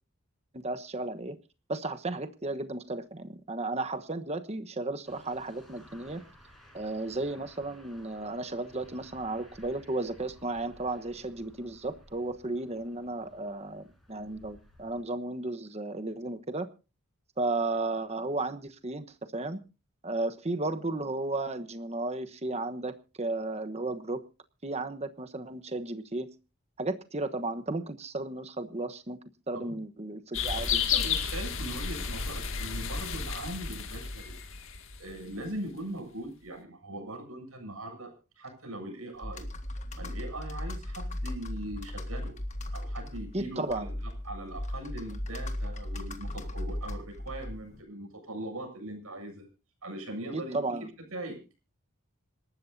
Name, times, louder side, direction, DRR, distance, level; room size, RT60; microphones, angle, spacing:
voice 1, 0.5-1.4 1.7-6.2 6.7-16.7 17.4-19.1 19.3-19.6 20.0-24.2 24.6-26.3 26.8-29.2 29.5-30.8 43.3-43.9 50.3-50.9, right 2 dB, 30° right, 9 dB, 1.1 m, -34 dB
sound 1, 5.1-15.0, equal, ahead, 6.2 m, -57 dB
sound 2, 30.3-35.3, left 6 dB, 60° left, 2.2 m, -32 dB
voice 2, 30.5-34.4 35.0-39.4 39.9-42.3 42.7-43.9 44.2-49.5 49.8-50.7 51.1-51.4, right 1 dB, 75° right, 4 dB, 7.7 m, -40 dB
Computer keyboard, 39.2-47.8, left 1 dB, 35° left, 1.7 m, -37 dB
26.5 x 13.0 x 2.7 m, 0.33 s
head